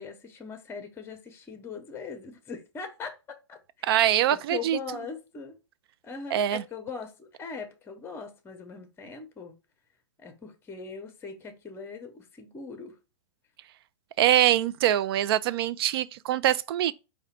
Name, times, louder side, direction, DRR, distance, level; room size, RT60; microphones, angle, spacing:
voice 1, 0.0-3.9 4.3-5.6 6.0-9.6 10.2-13.0, left 5 dB, 15° left, 0.8 m, -40 dB
voice 2, 3.8-4.8 6.3-6.6 14.2-16.9, right 12 dB, 55° right, 0.4 m, -23 dB
4.8 x 2.2 x 4.1 m
hypercardioid pair, 120°, 15 cm